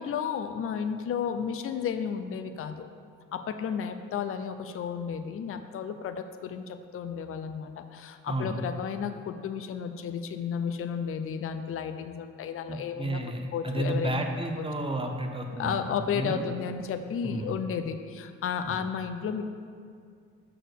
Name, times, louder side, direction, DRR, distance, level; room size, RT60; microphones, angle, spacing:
voice 1, 0.0-2.9 3.3-13.2 13.5-14.2 14.6-14.7 15.5-19.4, left 7 dB, 45° left, 8 dB, 0.5 m, -33 dB
voice 2, 8.3-8.6 12.7-15.8 16.1-16.4 17.2-17.5, right 1 dB, 20° right, 3 dB, 0.9 m, -32 dB
6.2 x 4.4 x 6.6 m, 2.2 s
cardioid pair, 90°, 30 cm